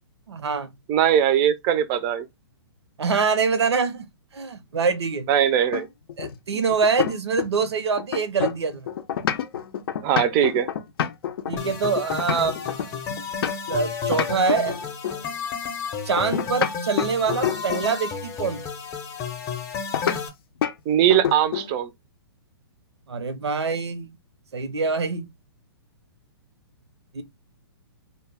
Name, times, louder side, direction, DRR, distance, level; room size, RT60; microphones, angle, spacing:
voice 1, 0.3-0.7 3.0-4.1 4.3-5.3 6.2-8.9 11.5-13.0 13.7-14.8 16.0-18.6 23.1-24.2 24.5-25.3 27.1-27.2, right 5 dB, 90° right, 0.6 m, -25 dB
voice 2, 0.9-2.2 5.3-5.9 10.0-10.7 20.9-21.9, right 10 dB, 30° right, 0.4 m, -20 dB
sound 1, 5.7-7.7 8.0-13.8 14.1-15.3 16.2-18.0 19.9-20.2 20.6-20.8 21.1-21.8, left 9 dB, 60° left, 0.5 m, -28 dB
sound 2, 11.6-20.3, left 6 dB, 20° left, 0.6 m, -32 dB
2.2 x 2.0 x 3.4 m
hypercardioid pair, 140°, 14 cm